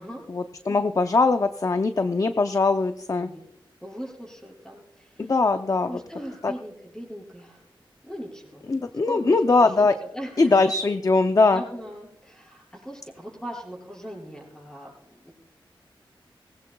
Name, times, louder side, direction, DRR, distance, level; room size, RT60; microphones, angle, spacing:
voice 1, 0.3-3.3 5.2-5.9 6.4-6.5 8.7-9.9 10.4-11.6, left 3 dB, 40° left, 9 dB, 0.5 m, -21 dB
voice 2, 3.8-5.3 5.9-7.6 8.0-8.6 9.0-10.8 11.5-15.3, equal, 5° left, -1 dB, 5.4 m, -40 dB
19.0 x 17.0 x 2.3 m, 0.87 s
wide cardioid pair, 65°, 9 cm